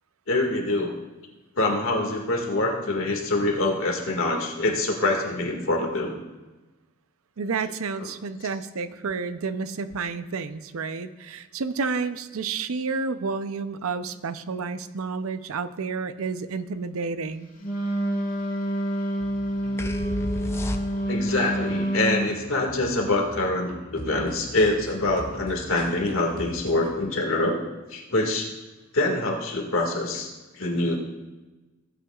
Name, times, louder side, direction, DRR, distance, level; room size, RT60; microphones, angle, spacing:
voice 1, 0.3-0.9 1.6-6.2 21.1-27.6 27.9-28.5 28.9-30.3 30.5-31.0, left 2 dB, 75° left, 0 dB, 1.9 m, -25 dB
voice 2, 7.4-17.5, right 4 dB, 90° right, 12 dB, 0.6 m, -30 dB
Wind instrument woodwind instrument, 17.6-22.3, equal, 40° left, 1.5 m, -27 dB
sound 1, 19.2-26.9, equal, 40° right, 1.7 m, -42 dB
sound 2, 19.8-21.3, left 1 dB, 10° left, 0.4 m, -31 dB
17.5 x 9.0 x 2.4 m, 1.2 s
head